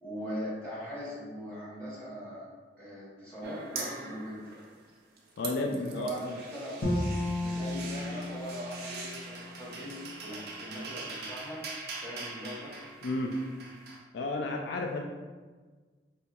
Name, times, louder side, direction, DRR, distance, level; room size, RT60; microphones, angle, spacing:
voice 1, 0.0-2.4 2.8-4.4 5.7-7.0 7.3-11.6 12.0-12.7, equal, 10° left, -10 dB, 0.9 m, -40 dB
sound 1, 3.4-4.9 5.2-14.0, right 4 dB, 60° right, 0.5 m, -43 dB
voice 2, 5.4-6.4 13.0-13.4 14.1-15.0, left 2 dB, 70° left, 0 dB, 0.3 m, -32 dB
Bowed string instrument, 6.8-9.9, left 1 dB, 90° left, 0.7 m, -34 dB
4.3 x 2.7 x 2.2 m, 1.4 s
head